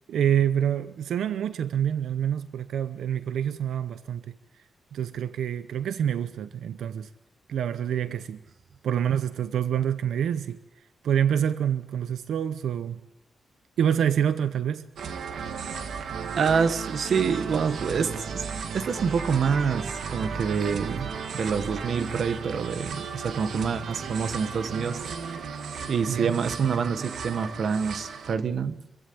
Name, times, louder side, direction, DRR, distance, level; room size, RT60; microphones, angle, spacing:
voice 1, 0.1-4.3 4.9-7.1 7.5-8.4 8.8-10.6 11.0-13.0 13.8-14.9 26.1-26.3, right 9 dB, 85° right, 0.8 m, -26 dB
sound 1, 15.0-28.3, right 6 dB, 70° right, 2.0 m, -35 dB
voice 2, 16.4-18.4 18.7-25.0 25.9-28.8, right 6 dB, 50° right, 1.3 m, -27 dB
26.0 x 15.5 x 8.5 m
wide cardioid pair, 170°, 0 cm